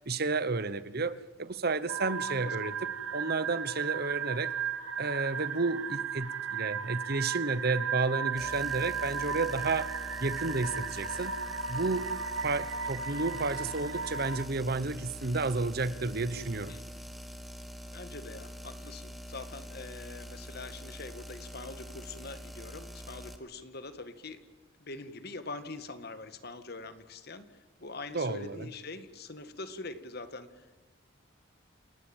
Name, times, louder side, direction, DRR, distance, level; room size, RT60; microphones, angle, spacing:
voice 1, 0.1-2.7 3.1-4.5 5.0-9.9 10.2-11.4 11.7-12.1 12.4-16.7 28.1-28.7, right 3 dB, 50° right, 15 dB, 1.0 m, -31 dB
sound 1, 1.9-14.4, right 6 dB, 85° right, 1.9 m, -35 dB
sound 2, 8.4-23.4, equal, ahead, 2.0 m, -45 dB
voice 2, 17.9-24.4 24.8-27.5 27.8-30.8, left 3 dB, 50° left, 11 dB, 1.9 m, -43 dB
29.0 x 20.0 x 9.1 m, 1.2 s
head